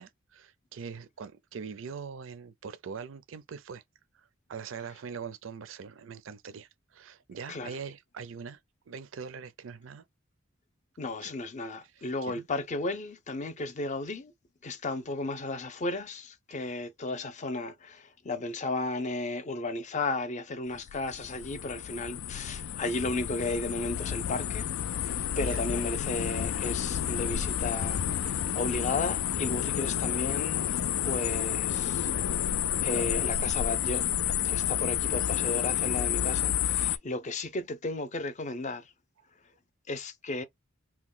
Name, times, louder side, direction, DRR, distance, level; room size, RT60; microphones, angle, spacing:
voice 1, 0.0-3.8 4.1-8.6 8.9-10.0 11.2-11.3 12.0-12.5 25.4-25.7, right 6 dB, 70° right, 0.4 m, -42 dB
voice 2, 11.0-14.3 14.6-24.7 25.0-30.7 31.0-34.1 34.4-38.9 39.9-40.4, left 2 dB, 35° left, 0.6 m, -34 dB
sound 1, 20.7-37.0, left 10 dB, 85° left, 0.4 m, -30 dB
2.9 x 2.2 x 3.7 m
head